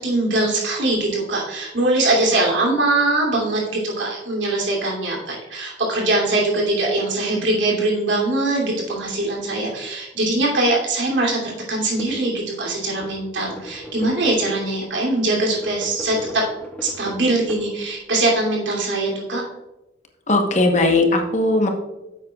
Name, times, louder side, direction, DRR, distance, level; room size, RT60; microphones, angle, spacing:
voice 1, 0.0-16.4 16.8-19.4, right 2 dB, 85° right, -2 dB, 2.8 m, -22 dB
sound 1, 11.8-12.3 12.8-14.7 15.4-18.1, equal, 10° left, 1.0 m, -38 dB
voice 2, 20.3-21.7, left 2 dB, 40° left, 3 dB, 1.1 m, -18 dB
10.5 x 7.8 x 2.4 m, 1.0 s
head